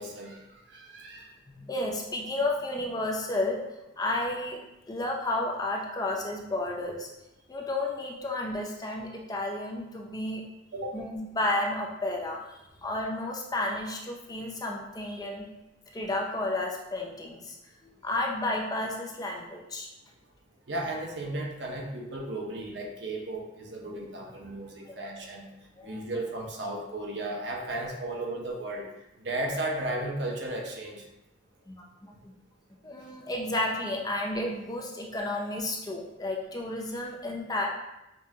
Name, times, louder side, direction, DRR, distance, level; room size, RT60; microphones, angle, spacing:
voice 1, 0.0-1.3 10.7-11.0 20.7-25.5 25.8-28.9 29.2-31.0, right 1 dB, 60° right, 0 dB, 0.7 m, -35 dB
voice 2, 1.5-3.6 4.0-4.6 4.9-7.1 7.5-10.4 10.9-12.4 12.8-15.5 15.9-17.6 17.8-19.9 24.9-25.0 25.8-26.0 31.7-32.3 32.8-37.7, left 2 dB, 20° left, -1 dB, 0.4 m, -32 dB
5.3 x 2.3 x 2.8 m, 0.93 s
head